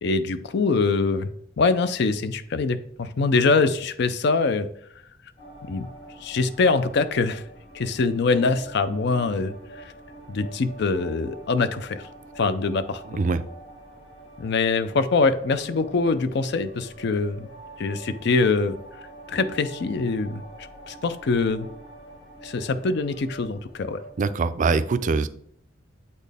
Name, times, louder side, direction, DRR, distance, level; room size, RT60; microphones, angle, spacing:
voice 1, 0.0-1.3 1.6-4.7 5.7-5.9 6.2-7.4 7.7-9.9 10.3-12.1 12.4-13.0 14.4-17.5 17.8-18.8 19.3-20.4 20.9-21.7 22.4-24.0, left 4 dB, 60° left, 12 dB, 0.4 m, -23 dB
sound 1, 5.4-24.5, right 1 dB, 85° left, 2.4 m, -45 dB
voice 2, 13.1-13.4 24.2-25.3, right 4 dB, 40° right, 13 dB, 0.4 m, -23 dB
8.1 x 4.3 x 3.4 m, 0.65 s
head